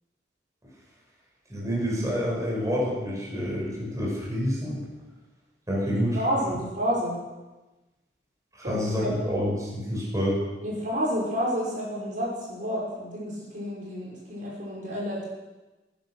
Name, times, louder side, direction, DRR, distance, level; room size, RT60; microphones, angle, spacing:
voice 1, 1.5-4.8 5.7-6.2 8.5-10.4, equal, 20° right, -4 dB, 6.0 m, -28 dB
voice 2, 5.8-7.2 8.6-9.4 10.6-15.3, equal, 50° right, -4 dB, 5.7 m, -30 dB
20.5 x 11.0 x 6.5 m, 1.1 s
head